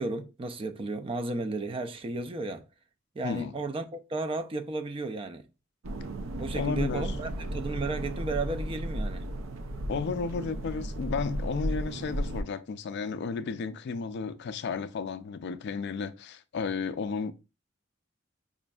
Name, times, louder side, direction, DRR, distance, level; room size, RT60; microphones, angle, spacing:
voice 1, 0.0-2.6 3.2-5.5 6.4-9.3, right 3 dB, 25° right, 0.4 m, -34 dB
sound 1, 5.8-12.4, right 1 dB, 85° right, 0.5 m, -34 dB
voice 2, 6.5-7.1 9.9-17.3, left 5 dB, 55° left, 0.3 m, -33 dB
5.0 x 2.5 x 2.3 m
head